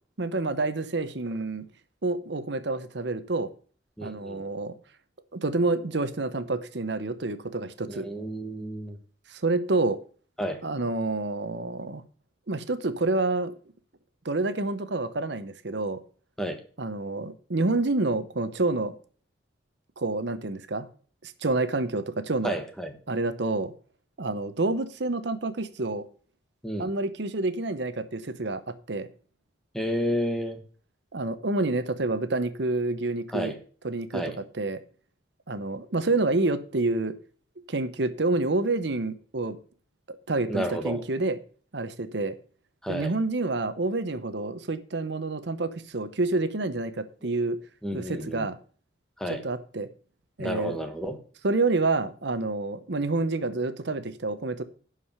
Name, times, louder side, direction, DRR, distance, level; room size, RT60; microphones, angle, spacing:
voice 1, 0.2-1.7 2.0-3.5 4.0-4.7 5.3-8.1 9.3-10.0 10.6-12.0 12.5-13.5 14.2-16.0 16.8-18.9 20.0-20.9 21.2-22.5 23.1-23.7 24.2-26.0 26.8-29.1 31.1-33.5 33.8-34.8 35.5-37.1 37.7-39.6 40.1-41.4 41.7-42.3 42.9-47.6 47.9-48.6 49.4-49.9 50.4-50.8 51.4-54.6, right 2 dB, 65° right, 11 dB, 0.9 m, -28 dB
voice 2, 4.0-4.4 7.9-9.0 10.4-10.6 16.4-16.6 22.4-23.0 26.6-26.9 29.7-30.6 33.3-33.6 34.1-34.4 40.5-41.0 42.8-43.1 47.2-47.3 47.8-48.5 49.2-49.4 50.4-51.2, equal, 5° left, 6 dB, 1.2 m, -31 dB
11.5 x 4.9 x 6.9 m, 0.42 s
head